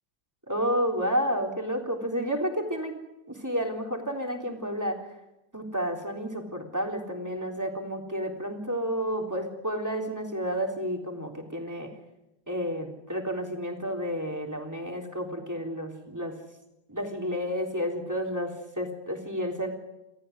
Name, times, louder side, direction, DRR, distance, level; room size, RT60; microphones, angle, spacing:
voice 1, 0.5-3.0 3.3-5.0 5.5-11.9 12.5-16.3 16.9-19.7, equal, 10° right, 2 dB, 3.6 m, -31 dB
28.5 x 14.5 x 9.5 m, 0.91 s
omnidirectional pair, 1.9 m